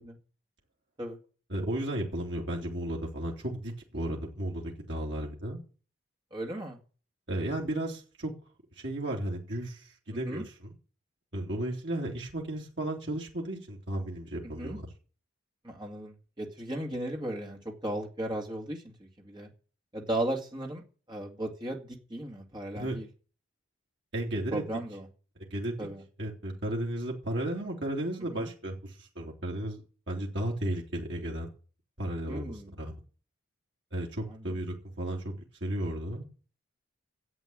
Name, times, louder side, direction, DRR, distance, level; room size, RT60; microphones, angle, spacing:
voice 1, 1.5-5.6 7.3-8.3 8.8-10.5 11.3-14.9 22.7-23.0 24.1-24.6 25.5-25.9 26.2-29.8 30.1-31.5 32.0-32.9 33.9-35.3 35.6-36.2, right 1 dB, 60° right, -2 dB, 2.9 m, -34 dB
voice 2, 6.3-6.8 10.1-10.4 14.4-14.8 15.6-19.5 19.9-20.8 21.1-23.1 24.5-25.1 25.8-26.0 28.3-28.5 32.3-32.7 34.3-34.4, right 1 dB, 20° right, 0 dB, 2.2 m, -36 dB
11.0 x 8.0 x 9.0 m, 0.38 s
head